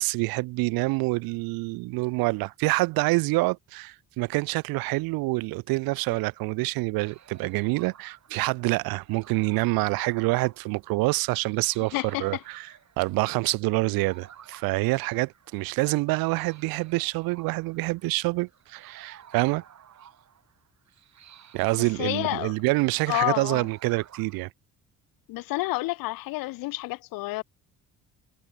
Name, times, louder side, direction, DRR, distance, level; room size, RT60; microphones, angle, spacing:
voice 1, 0.0-11.9 12.2-12.7 13.0-19.6 21.5-24.5, right 23 dB, 80° right, 0.6 m, -26 dB
sound 1, 7.0-24.5, right 9 dB, 50° right, 5.3 m, -54 dB
voice 2, 11.9-12.4 21.8-22.6 23.1-23.7 25.3-27.4, left 20 dB, 75° left, 0.6 m, -29 dB
cardioid pair, 100°, 34 cm